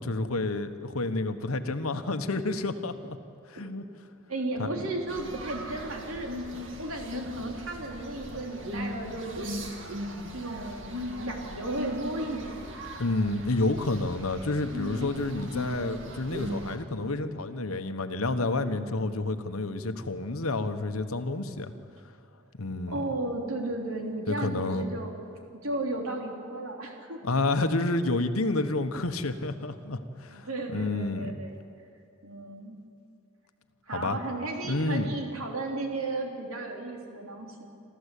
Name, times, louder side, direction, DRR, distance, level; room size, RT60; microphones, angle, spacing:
voice 1, 0.0-3.2 3.5-3.8 4.6-4.7 13.0-21.7 22.5-23.0 24.3-24.8 27.2-31.3 33.9-34.2 34.7-35.1, left 2 dB, 85° left, 9 dB, 1.2 m, -29 dB
voice 2, 4.3-6.3 6.8-9.8 10.3-12.8 14.9-15.1 22.9-25.1 25.6-27.2 30.3-31.6 32.2-32.8 33.9-37.7, right 2 dB, 85° right, 1 dB, 3.2 m, -34 dB
sound 1, 5.1-16.8, left 1 dB, 60° right, 2.3 m, -38 dB
26.5 x 14.0 x 8.4 m, 2.5 s
head